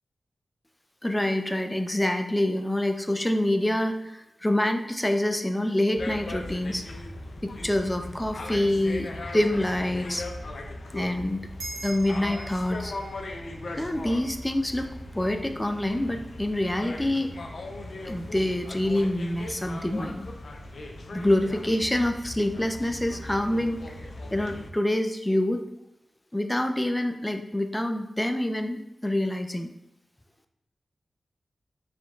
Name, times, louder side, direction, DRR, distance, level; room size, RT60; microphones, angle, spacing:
voice 1, 1.0-6.8 7.4-10.3 10.9-11.4 11.8-12.9 13.8-17.3 18.0-20.3 21.1-25.6 26.3-29.7, left 1 dB, 15° left, 6 dB, 0.4 m, -26 dB
sound 1, 5.9-24.7, left 1 dB, 70° left, 0.5 m, -39 dB
sound 2, 11.6-16.3, right 2 dB, 75° right, 0.9 m, -45 dB
4.8 x 3.6 x 2.4 m, 0.89 s
cardioid pair, 60°, 0 cm